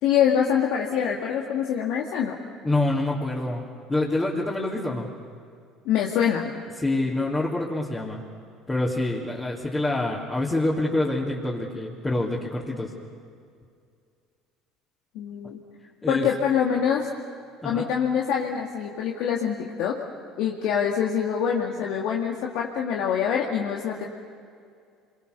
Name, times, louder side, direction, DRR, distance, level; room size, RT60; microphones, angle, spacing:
voice 1, 0.0-2.3 5.9-6.5 15.1-15.6 16.1-17.1 17.6-20.0 20.4-24.0, left 8 dB, 70° left, -1 dB, 2.0 m, -25 dB
voice 2, 2.6-3.6 3.9-5.1 6.8-8.2 8.7-12.9 16.0-16.2 17.6-17.9, left 2 dB, 20° left, -6 dB, 3.4 m, -26 dB
27.0 x 23.0 x 6.8 m, 2.3 s
supercardioid pair, 85°, 0 cm